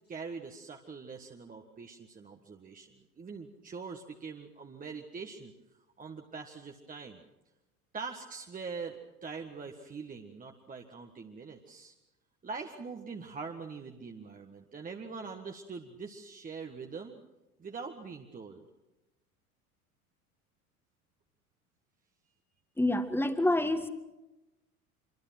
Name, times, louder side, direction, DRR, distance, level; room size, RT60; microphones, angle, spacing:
voice 1, 0.1-5.5 6.0-7.2 7.9-11.9 12.4-17.2 17.6-18.7, right 5 dB, 20° right, 3 dB, 1.7 m, -43 dB
voice 2, 22.8-23.9, left 1 dB, 5° left, 9 dB, 1.9 m, -27 dB
26.5 x 23.0 x 6.0 m, 1.0 s
figure-of-eight pair, 75°, 44 cm